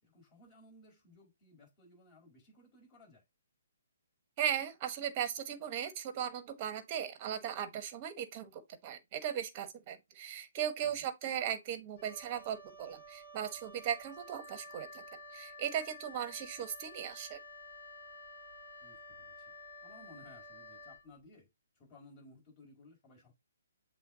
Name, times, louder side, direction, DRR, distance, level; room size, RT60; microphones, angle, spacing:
voice 1, 0.0-3.2 10.8-11.1 18.8-19.5 19.8-21.5 21.7-23.3, left 2 dB, 25° left, 4.9 m, -59 dB
voice 2, 4.4-15.0 15.3-17.4, right 9 dB, 35° right, 1.2 m, -37 dB
Wind instrument woodwind instrument, 11.9-21.1, left 1 dB, 50° left, 2.2 m, -51 dB
7.6 x 3.5 x 3.8 m
hypercardioid pair, 145°, 0 cm